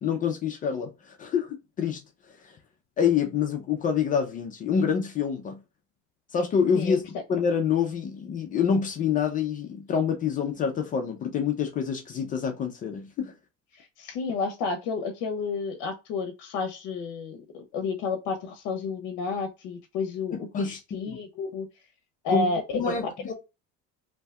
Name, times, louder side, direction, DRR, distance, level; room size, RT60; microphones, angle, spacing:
voice 1, 0.0-2.0 2.4-2.6 3.0-5.6 6.3-13.3 20.3-21.2 22.3-23.3, left 7 dB, 30° left, 0.3 m, -27 dB
voice 2, 13.7-21.7 22.2-22.6, left 4 dB, 75° left, 0.6 m, -31 dB
2.6 x 2.2 x 3.4 m
cardioid pair, 165°, 30 cm